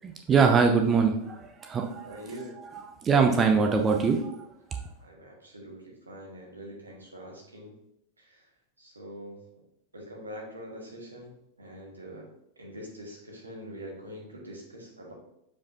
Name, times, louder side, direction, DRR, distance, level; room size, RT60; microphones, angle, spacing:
voice 1, 0.3-1.2 1.7-2.1 3.0-4.3 4.7-4.8, right 5 dB, 25° right, 4 dB, 0.6 m, -22 dB
voice 2, 2.0-2.6 5.0-7.8 8.2-8.5 8.8-9.4 9.9-12.3 12.6-15.1, equal, 80° right, -1 dB, 1.6 m, -44 dB
7.3 x 4.8 x 2.8 m, 0.79 s
figure-of-eight pair, 90°, 0 cm